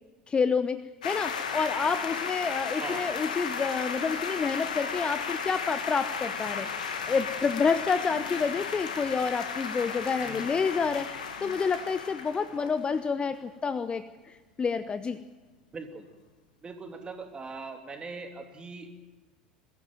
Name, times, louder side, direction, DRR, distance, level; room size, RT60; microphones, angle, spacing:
voice 1, 0.3-6.7 7.1-15.2, left 5 dB, 20° left, 13 dB, 0.8 m, -29 dB
sound 1, 1.0-13.0, left 6 dB, 70° left, 2.0 m, -34 dB
voice 2, 10.2-10.5 12.5-12.7 15.7-16.1 16.6-18.9, right 4 dB, 20° right, 4 dB, 3.0 m, -41 dB
22.0 x 14.0 x 9.2 m, 1.2 s
figure-of-eight pair, 70°, 4 cm